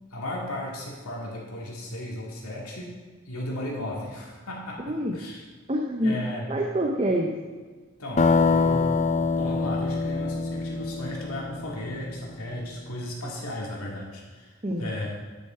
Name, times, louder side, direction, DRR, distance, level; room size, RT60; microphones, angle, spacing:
voice 1, 0.1-3.0 3.3-5.4 6.0-6.5 8.0-9.0 9.4-15.1, left 1 dB, 85° left, -2 dB, 2.3 m, -35 dB
voice 2, 4.8-5.2 5.7-6.2 6.5-7.4 14.6-15.1, equal, 25° right, 1 dB, 0.7 m, -26 dB
sound 1, 8.2-12.0, left 4 dB, 30° left, 0.4 m, -24 dB
10.0 x 6.6 x 4.4 m, 1.4 s
head